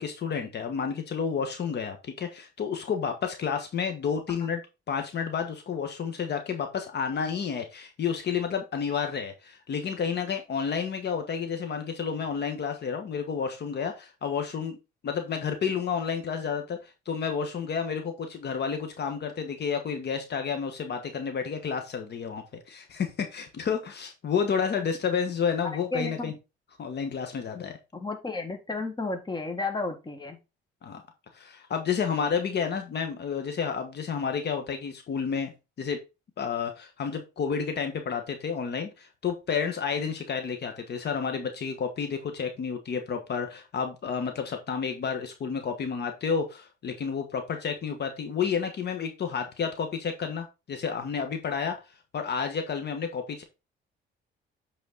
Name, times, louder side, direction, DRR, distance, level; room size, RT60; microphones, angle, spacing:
voice 1, 0.0-4.6 4.9-14.8 15.0-26.3 26.8-27.7 30.8-31.0 31.3-35.5 35.8-36.0 36.4-51.7 52.1-53.4, left 6 dB, 60° left, 6 dB, 1.4 m, -30 dB
voice 2, 25.9-26.3 27.9-30.4, left 3 dB, 20° left, 5 dB, 1.7 m, -32 dB
8.3 x 4.2 x 3.9 m, 0.27 s
cardioid pair, 90°, 20 cm